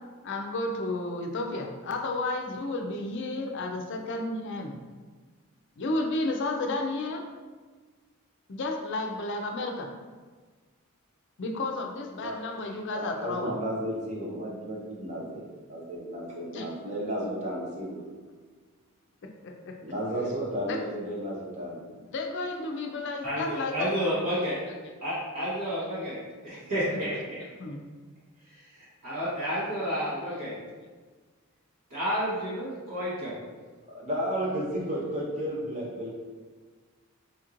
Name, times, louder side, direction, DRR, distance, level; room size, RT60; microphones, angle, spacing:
voice 1, 0.2-4.8 5.8-7.2 8.5-9.9 11.4-13.5 16.5-16.7 19.4-19.7 20.7-20.8 21.9-23.9 26.9-27.0 27.6-27.8, left 2 dB, 55° left, 2 dB, 0.4 m, -32 dB
voice 2, 12.9-18.0 19.8-21.8 33.9-36.1, equal, 30° right, -4 dB, 0.8 m, -33 dB
voice 3, 23.2-24.5 25.0-26.2 26.4-27.4 29.0-30.5 31.9-33.3, equal, 85° right, -10 dB, 1.2 m, -30 dB
4.4 x 2.9 x 2.5 m, 1.4 s
head